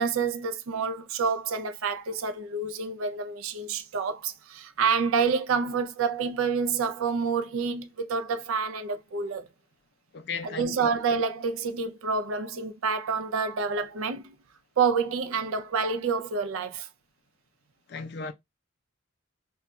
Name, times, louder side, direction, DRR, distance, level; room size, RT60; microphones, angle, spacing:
voice 1, 0.0-9.5 10.4-14.4 14.8-16.9, right 5 dB, 75° right, 0.4 m, -28 dB
voice 2, 10.1-10.9 17.9-18.3, left 4 dB, 50° left, 0.4 m, -36 dB
2.2 x 2.2 x 3.9 m
head